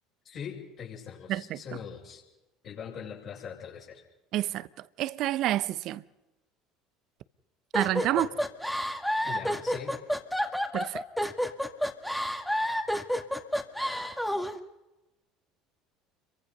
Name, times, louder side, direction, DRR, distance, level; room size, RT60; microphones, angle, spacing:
voice 1, 0.2-2.2 2.6-4.0 8.1-8.4 9.2-10.0, left 7 dB, 50° left, 6.8 m, -42 dB
voice 2, 1.3-1.6 4.3-6.0 7.7-8.3 10.7-11.0, right 14 dB, 55° right, 0.9 m, -29 dB
sound 1, 7.7-14.6, equal, 5° left, 2.1 m, -29 dB
29.5 x 23.5 x 5.5 m
hypercardioid pair, 65°, 0 cm